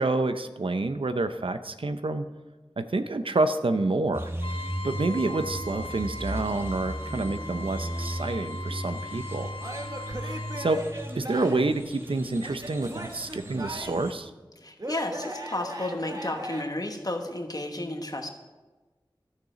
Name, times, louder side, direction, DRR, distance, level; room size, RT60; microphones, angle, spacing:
voice 1, 0.0-2.2 2.8-4.3 4.8-9.5 10.2-10.8 11.1-14.3, right 2 dB, 90° right, 9 dB, 0.6 m, -28 dB
sound 1, 4.1-14.1, equal, 25° right, 1.2 m, -36 dB
Trumpet, 4.4-10.8, left 2 dB, 85° left, 0.8 m, -40 dB
Male speech man speaking / Yell / Laughter, 9.6-11.7 12.4-14.1 14.8-16.6, right 1 dB, 45° right, 1.2 m, -38 dB
voice 2, 14.6-18.3, left 1 dB, 45° left, 4 dB, 1.2 m, -32 dB
13.0 x 6.6 x 5.0 m, 1.2 s
wide cardioid pair, 50°, 9 cm